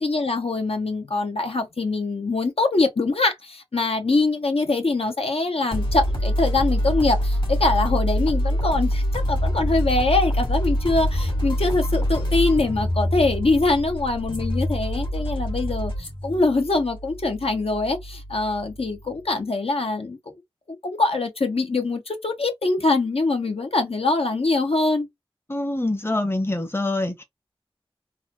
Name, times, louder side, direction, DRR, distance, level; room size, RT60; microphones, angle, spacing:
voice 1, 0.0-20.2 20.7-25.1, left 3 dB, 75° left, 0.9 m, -23 dB
sound 1, 5.7-19.1, equal, 55° left, 2.2 m, -25 dB
voice 2, 25.5-27.2, left 2 dB, 25° left, 0.8 m, -25 dB
3.9 x 2.4 x 2.9 m
wide cardioid pair, 60°, 10 cm